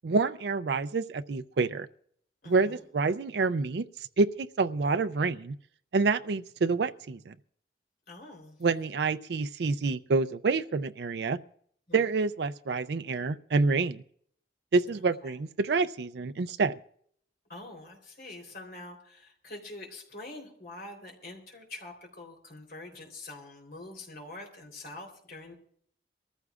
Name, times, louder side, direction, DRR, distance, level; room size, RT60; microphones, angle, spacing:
voice 1, 0.0-1.9 2.5-3.8 4.2-5.6 5.9-7.3 8.6-11.4 11.9-14.0 14.7-16.8, right 4 dB, 75° right, 11 dB, 0.4 m, -27 dB
voice 2, 2.4-2.8 8.1-8.6 11.9-12.1 15.2-15.4 17.5-25.5, left 2 dB, 55° left, 1 dB, 3.5 m, -45 dB
24.0 x 14.5 x 2.4 m, 0.63 s
head